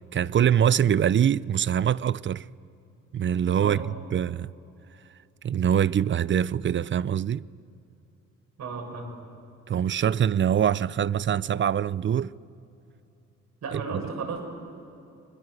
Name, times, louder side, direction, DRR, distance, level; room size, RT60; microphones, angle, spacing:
voice 1, 0.1-2.5 3.1-4.5 5.4-7.4 9.7-12.3, right 9 dB, 40° right, 0.5 m, -24 dB
voice 2, 8.6-9.1 13.6-14.4, right 5 dB, 65° right, 7.1 m, -33 dB
30.0 x 21.5 x 7.9 m
cardioid pair, 90°, 30 cm